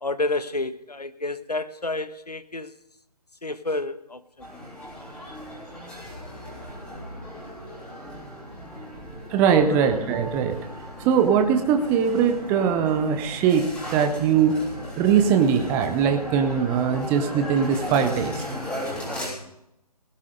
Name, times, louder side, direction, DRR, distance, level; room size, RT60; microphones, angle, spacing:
voice 1, 0.0-2.7 3.4-4.5 9.7-9.8, left 2 dB, 85° left, 1.2 m, -30 dB
sound 1, 4.4-19.3, equal, 5° left, 3.7 m, -36 dB
voice 2, 9.3-10.6 11.0-14.6 15.0-18.4, right 7 dB, 10° right, 0.6 m, -21 dB
Sigh, 9.6-10.3, right 4 dB, 55° right, 3.4 m, -41 dB
17.5 x 12.0 x 3.8 m
figure-of-eight pair, 145°, 20 cm